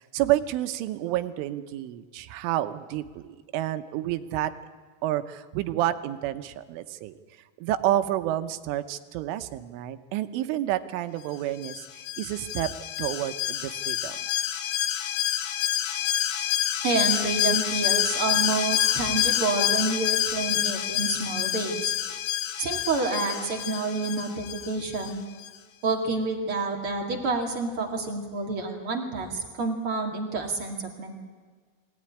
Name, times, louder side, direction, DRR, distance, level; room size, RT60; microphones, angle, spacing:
voice 1, 0.0-4.5 5.0-7.2 7.6-12.7 13.0-14.2, right 13 dB, 90° right, 10 dB, 3.5 m, -29 dB
Alarm, 11.6-25.1 25.4-25.5, left 12 dB, 80° left, 2.0 m, -28 dB
voice 2, 16.8-21.9 22.6-25.2 25.8-31.2, right 3 dB, 40° right, 2 dB, 2.1 m, -28 dB
22.5 x 18.0 x 9.9 m, 1.5 s
omnidirectional pair, 5.5 m